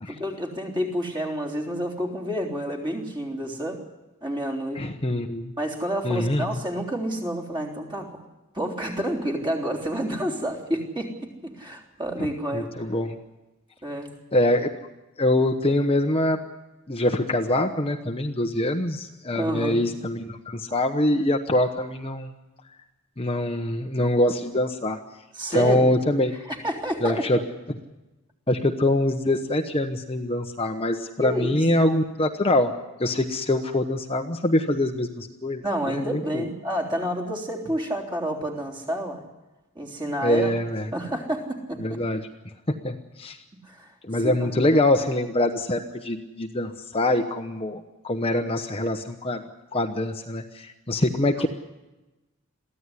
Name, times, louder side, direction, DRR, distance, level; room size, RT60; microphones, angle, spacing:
voice 1, 0.1-3.8 4.2-4.9 5.6-8.2 8.5-12.7 13.8-14.1 19.3-19.8 25.3-25.9 26.3-27.5 31.2-31.6 35.6-39.2 39.8-40.5 40.9-42.0 43.7-43.9 44.2-44.7, equal, 20° right, 2 dB, 3.6 m, -29 dB
voice 2, 4.8-5.5 6.0-6.5 12.2-13.2 14.3-14.7 15.2-16.4 16.9-22.3 23.2-25.0 25.5-26.3 27.0-27.4 27.7-27.8 28.5-32.7 33.0-36.4 40.2-40.9 41.8-42.2 42.8-43.4 44.1-49.4 49.7-51.5, left 1 dB, 25° left, 4 dB, 1.0 m, -24 dB
22.5 x 15.5 x 10.0 m, 1.1 s
head